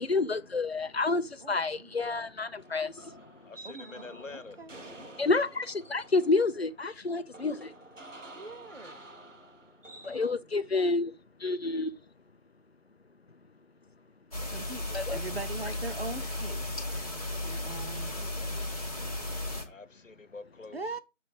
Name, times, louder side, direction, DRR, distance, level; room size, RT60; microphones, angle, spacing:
voice 1, 0.0-3.2 5.2-7.7 10.0-11.1 11.4-11.9 14.9-15.2, left 3 dB, 55° left, 0.6 m, -29 dB
voice 2, 1.4-2.0 3.6-5.1 8.4-9.0 14.5-17.1 17.4-18.2 20.7-21.0, right 3 dB, 55° right, 0.5 m, -42 dB
sound 1, 2.6-10.3, right 2 dB, 75° right, 1.5 m, -50 dB
voice 3, 3.4-4.6 17.8-18.8 19.7-20.8, left 3 dB, 85° left, 1.2 m, -47 dB
sound 2, 14.3-19.6, left 1 dB, 30° left, 1.1 m, -35 dB
6.8 x 3.3 x 5.0 m
figure-of-eight pair, 175°, 38 cm